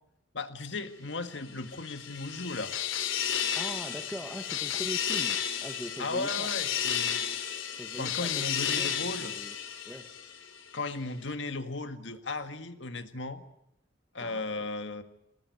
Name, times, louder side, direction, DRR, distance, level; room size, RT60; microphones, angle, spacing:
voice 1, 0.3-2.7 6.0-7.3 8.0-9.3 10.7-13.4 14.1-15.0, left 3 dB, 65° left, 8 dB, 1.8 m, -36 dB
sound 1, 1.5-10.6, left 9 dB, 85° left, 3.4 m, -33 dB
voice 2, 3.5-6.5 7.7-8.9 9.2-9.5 9.8-10.1 14.2-14.7, equal, 5° right, 4 dB, 1.2 m, -42 dB
26.5 x 18.0 x 9.6 m, 0.82 s
head